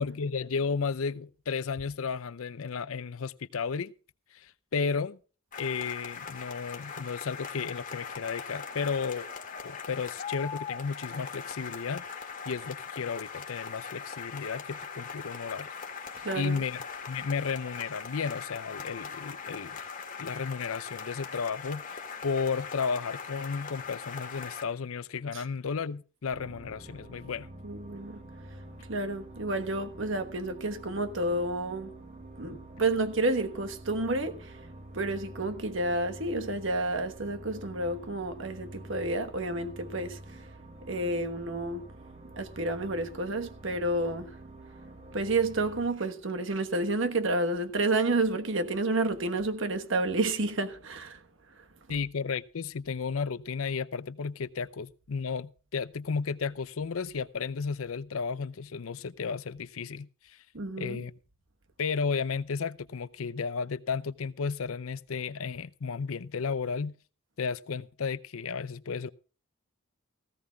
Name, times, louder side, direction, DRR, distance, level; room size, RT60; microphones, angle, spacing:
voice 1, 0.0-3.9 4.3-5.2 5.6-9.3 9.6-15.7 16.3-16.8 17.1-19.8 20.2-27.5 51.9-60.4 60.8-61.1 61.8-67.0 67.4-69.1, left 5 dB, 75° left, 0.6 m, -33 dB
sound 1, 5.5-24.6, left 6 dB, 40° left, 2.1 m, -41 dB
voice 2, 16.2-16.6 25.3-25.4 27.6-28.2 28.9-32.0 32.4-34.7 34.9-40.5 40.9-41.9 42.4-44.4 45.1-51.2 51.6-51.7 60.5-61.0, right 2 dB, 60° right, 1.2 m, -30 dB
sound 2, 26.3-45.9, right 1 dB, 30° right, 1.1 m, -47 dB
18.0 x 15.5 x 2.3 m
head